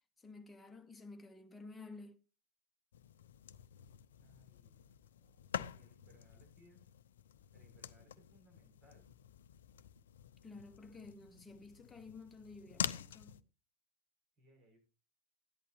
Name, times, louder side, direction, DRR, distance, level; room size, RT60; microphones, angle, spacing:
voice 1, 0.2-2.2 10.4-13.4, left 3 dB, 10° left, 1.5 m, -52 dB
sound 1, 2.9-13.4, left 9 dB, 65° left, 0.6 m, -47 dB
voice 2, 4.2-6.9 7.5-9.1 14.4-14.8, equal, 35° right, 6.1 m, -67 dB
14.0 x 11.0 x 2.8 m
figure-of-eight pair, 90°, 0 cm